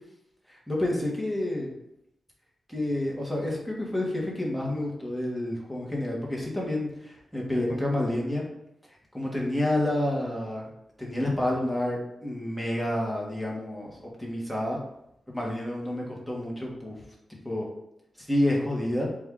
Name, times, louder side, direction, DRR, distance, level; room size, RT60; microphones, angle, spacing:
voice 1, 0.5-1.7 2.7-8.4 9.1-10.7 11.0-14.8 15.3-17.0 17.4-17.7 18.3-19.1, left 1 dB, ahead, -3 dB, 1.3 m, -29 dB
4.5 x 2.6 x 3.6 m, 0.81 s
wide cardioid pair, 105°, 0 cm